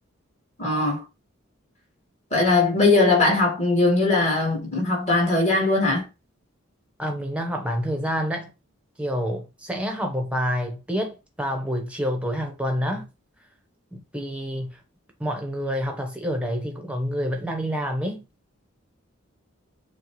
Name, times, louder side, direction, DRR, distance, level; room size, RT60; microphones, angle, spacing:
voice 1, 0.6-1.0 2.3-6.0, left 2 dB, 35° left, 1.8 m, -20 dB
voice 2, 7.0-8.5 9.0-13.1 13.9-14.8 15.2-18.2, equal, 5° right, 0.9 m, -28 dB
6.8 x 2.3 x 3.1 m
head